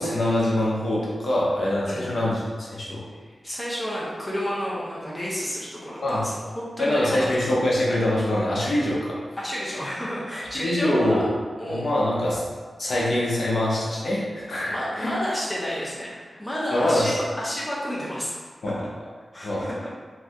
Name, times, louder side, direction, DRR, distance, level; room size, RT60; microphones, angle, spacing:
voice 1, 0.0-3.0 6.0-6.2 6.8-9.2 10.5-11.3 11.7-12.4 12.8-15.1 16.7-17.2 18.6-18.8 19.4-19.8, left 1 dB, 60° left, -6 dB, 0.7 m, -24 dB
voice 2, 3.3-7.5 9.4-11.3 11.6-11.9 14.7-18.3 18.7-18.8 19.3-19.9, equal, 10° left, -6 dB, 0.6 m, -31 dB
2.6 x 2.5 x 3.4 m, 1.5 s
wide cardioid pair, 115°, 0 cm